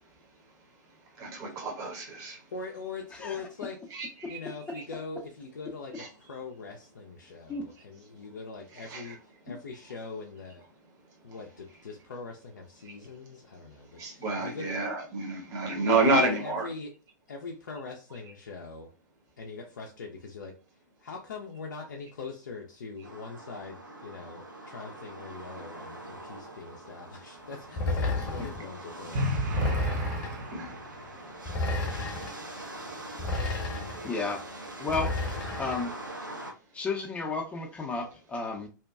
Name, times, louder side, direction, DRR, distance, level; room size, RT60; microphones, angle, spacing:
voice 1, 1.1-2.4 3.9-4.4 6.0-6.1 8.9-9.1 11.3-11.4 12.8-12.9 13.9-16.7 30.5-30.8, right 2 dB, 30° right, 0.9 m, -29 dB
voice 2, 2.3-3.8 4.3-10.6 11.2-14.8 16.0-16.9 17.3-18.9 19.4-20.5 21.0-30.5, left 4 dB, 65° left, 0.4 m, -42 dB
sound 1, 23.0-36.5, right 1 dB, 85° right, 0.7 m, -43 dB
sound 2, 27.8-28.6 29.5-30.5 31.5-32.3 33.2-34.1 34.9-35.9, left 2 dB, 35° left, 0.9 m, -31 dB
sound 3, 29.1-31.2, equal, 45° right, 0.5 m, -32 dB
voice 3, 34.0-34.4 34.8-35.1 35.6-35.9 36.7-38.7, left 4 dB, 10° left, 0.5 m, -32 dB
2.7 x 2.2 x 2.3 m
figure-of-eight pair, 100°, 10 cm